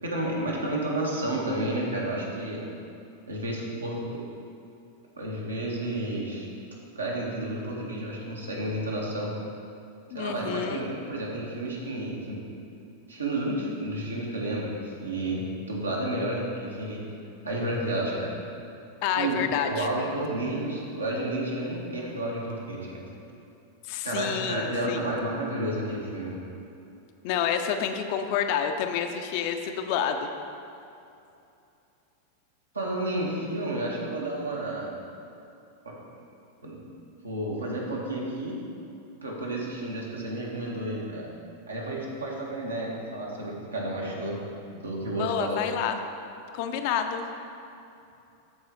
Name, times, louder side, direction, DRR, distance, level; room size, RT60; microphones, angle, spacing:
voice 1, 0.0-2.7 3.3-4.3 5.2-6.5 6.9-9.3 10.1-12.4 13.1-17.0 17.4-18.4 19.1-23.1 24.0-26.3 32.7-34.9 35.8-35.9 36.6-36.8 37.2-38.6 39.2-41.3 41.7-44.4 44.7-45.6, right 1 dB, 75° right, -3 dB, 1.4 m, -31 dB
voice 2, 10.1-10.8 19.0-19.9 23.9-25.0 27.2-30.3 45.2-46.0 46.5-47.2, left 8 dB, 45° left, 6 dB, 0.6 m, -28 dB
13.5 x 4.7 x 3.1 m, 2.7 s
figure-of-eight pair, 90°, 0 cm